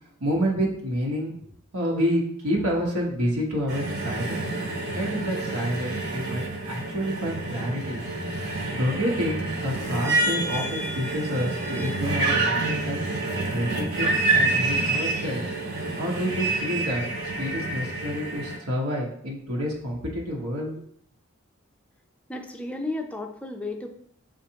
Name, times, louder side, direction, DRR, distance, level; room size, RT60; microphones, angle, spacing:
voice 1, 0.2-1.5 1.7-4.4 4.9-8.0 8.7-13.0 13.5-15.4 16.0-17.0 17.4-20.7, equal, 80° right, -2 dB, 1.1 m, -28 dB
sound 1, 3.7-18.6, right 2 dB, 55° right, 1.1 m, -28 dB
voice 2, 22.3-23.9, left 2 dB, 5° left, 4 dB, 0.4 m, -33 dB
7.3 x 2.5 x 2.8 m, 0.67 s
head